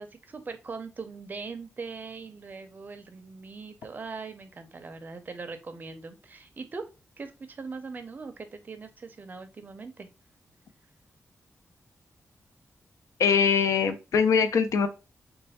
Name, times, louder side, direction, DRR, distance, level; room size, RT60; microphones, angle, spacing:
voice 1, 0.0-6.9 7.2-10.1, right 4 dB, 35° right, 8 dB, 0.5 m, -41 dB
voice 2, 13.2-14.9, left 6 dB, 80° left, 9 dB, 0.5 m, -22 dB
3.2 x 2.2 x 4.1 m, 0.29 s
wide cardioid pair, 160°, 5 cm